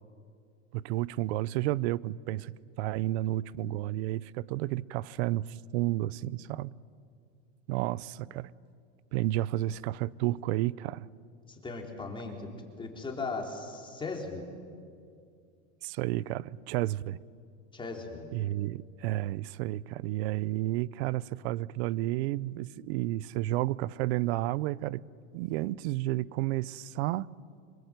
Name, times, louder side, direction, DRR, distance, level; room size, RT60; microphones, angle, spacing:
voice 1, 0.7-2.5 2.8-6.7 7.7-8.5 9.1-11.1 15.8-17.2 18.3-25.0 25.3-27.3, right 16 dB, 60° right, 0.7 m, -31 dB
voice 2, 11.5-12.5 12.8-14.5 17.7-18.3, left 3 dB, 15° left, 3.9 m, -37 dB
25.5 x 22.5 x 9.1 m
supercardioid pair, 140°, 36 cm